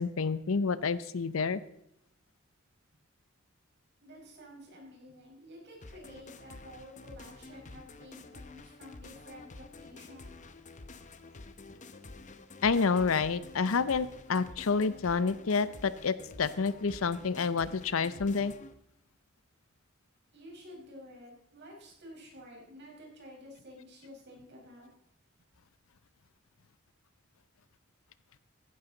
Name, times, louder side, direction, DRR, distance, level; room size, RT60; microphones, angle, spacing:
voice 1, 0.0-1.6 12.6-18.5, left 5 dB, 75° left, 16 dB, 0.6 m, -29 dB
voice 2, 4.0-10.4 20.3-24.9, equal, 55° right, -1 dB, 4.8 m, -51 dB
sound 1, 5.8-18.7, left 3 dB, 35° left, 0.8 m, -49 dB
15.0 x 11.0 x 3.9 m, 0.75 s
head